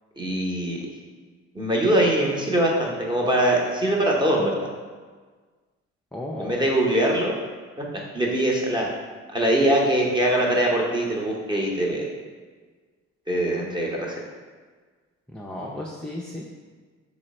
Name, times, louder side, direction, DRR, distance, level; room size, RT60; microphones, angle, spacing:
voice 1, 0.2-0.9 1.5-4.6 6.4-7.4 7.8-7.9 8.1-8.9 9.3-12.1 13.3-14.2, right 1 dB, 15° right, -2 dB, 0.8 m, -22 dB
voice 2, 6.1-6.6 15.3-16.5, left 1 dB, 5° left, -3 dB, 0.4 m, -34 dB
3.1 x 3.1 x 4.1 m, 1.5 s
cardioid pair, 90°, 30 cm